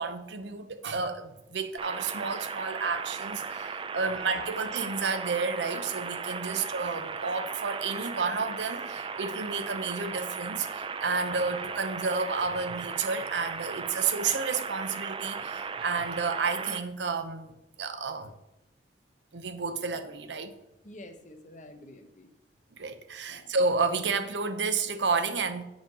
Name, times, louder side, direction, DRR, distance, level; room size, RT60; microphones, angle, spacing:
voice 1, 0.0-18.3 19.3-20.5 22.7-25.6, right 4 dB, 75° right, 8 dB, 0.8 m, -31 dB
sound 1, 1.8-16.8, right 5 dB, 30° right, 0.5 m, -37 dB
voice 2, 20.8-22.3 23.3-23.5, left 1 dB, 45° left, 6 dB, 1.0 m, -48 dB
9.3 x 5.1 x 5.4 m, 0.88 s
head